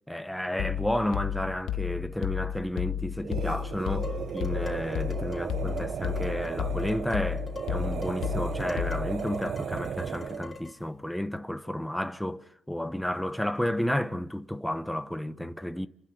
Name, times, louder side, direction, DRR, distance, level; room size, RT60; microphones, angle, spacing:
voice 1, 0.1-15.9, left 1 dB, 5° left, 1.0 m, -32 dB
sound 1, 0.6-9.3, left 10 dB, 80° left, 0.8 m, -33 dB
sound 2, 3.2-10.6, right 8 dB, 60° right, 0.7 m, -35 dB
Dishes pots and pans, 4.0-10.9, left 4 dB, 30° left, 3.4 m, -47 dB
29.5 x 11.5 x 8.2 m
cardioid pair, 90°, 0 cm